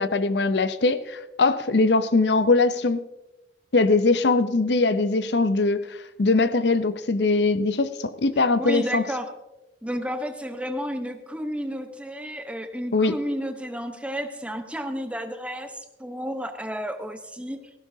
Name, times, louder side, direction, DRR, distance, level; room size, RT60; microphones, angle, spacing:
voice 1, 0.0-3.0 3.7-9.0 12.9-13.1, left 3 dB, 75° left, 12 dB, 0.7 m, -21 dB
voice 2, 8.6-9.3 9.8-17.6, equal, 5° right, 7 dB, 0.9 m, -31 dB
17.5 x 15.5 x 2.8 m, 0.98 s
head